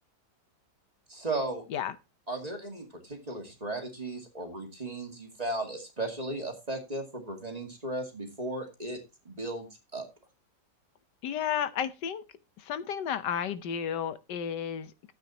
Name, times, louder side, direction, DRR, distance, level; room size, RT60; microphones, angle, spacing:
voice 1, 1.1-1.6 2.3-9.0 9.2-10.1, right 2 dB, 25° right, 2.3 m, -36 dB
voice 2, 11.2-12.2 12.6-15.1, left 8 dB, 90° left, 1.5 m, -32 dB
13.0 x 8.7 x 2.8 m
omnidirectional pair, 1.8 m